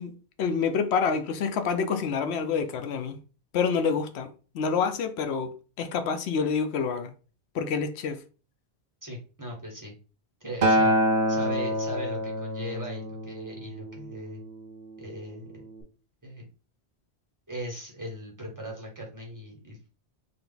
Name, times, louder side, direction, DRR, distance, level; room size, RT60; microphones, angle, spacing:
voice 1, 0.0-3.2 3.5-7.1 7.5-8.2, left 6 dB, 85° left, 0.9 m, -28 dB
voice 2, 9.0-9.9 10.4-11.0 11.3-14.4 15.0-15.7 16.2-16.5 17.5-19.9, equal, 20° right, 1.3 m, -39 dB
Acoustic guitar, 10.6-14.9 15.8-15.9, equal, 50° right, 0.8 m, -27 dB
3.4 x 2.8 x 3.9 m
omnidirectional pair, 1.1 m